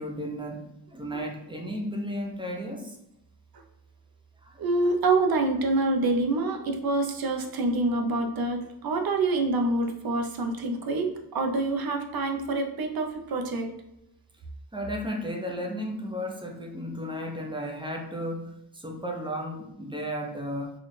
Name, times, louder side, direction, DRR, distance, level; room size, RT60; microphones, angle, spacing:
voice 1, 0.0-2.9 4.4-4.6 14.7-20.7, equal, 10° right, 1 dB, 0.5 m, -34 dB
voice 2, 4.6-13.7, right 2 dB, 60° right, 3 dB, 0.6 m, -26 dB
4.2 x 2.4 x 3.1 m, 0.83 s
wide cardioid pair, 130°, 42 cm